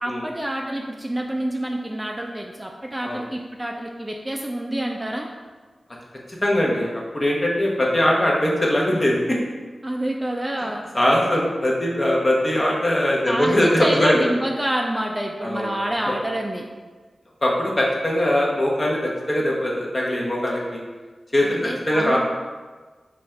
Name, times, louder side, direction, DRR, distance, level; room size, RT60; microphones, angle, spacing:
voice 1, 0.0-5.3 9.8-10.8 13.3-16.7 21.4-22.2, right 1 dB, 15° right, 1 dB, 0.3 m, -27 dB
voice 2, 6.4-9.2 10.9-14.3 15.4-15.7 17.4-20.8 21.3-22.2, left 1 dB, 35° left, -3 dB, 0.8 m, -21 dB
4.2 x 2.3 x 3.1 m, 1.4 s
wide cardioid pair, 70°, 0 cm